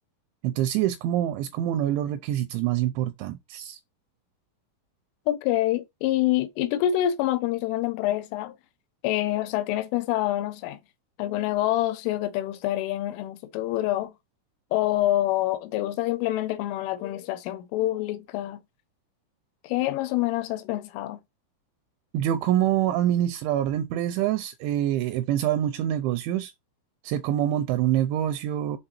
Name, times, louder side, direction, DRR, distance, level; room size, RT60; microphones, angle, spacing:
voice 1, 0.4-3.8 22.1-26.5 27.0-28.8, right 11 dB, 85° right, 2.7 m, -25 dB
voice 2, 5.3-8.6 9.0-10.8 11.2-14.1 14.7-18.6 19.6-21.2, left 14 dB, 80° left, 3.2 m, -26 dB
7.7 x 3.9 x 4.3 m
omnidirectional pair, 5.7 m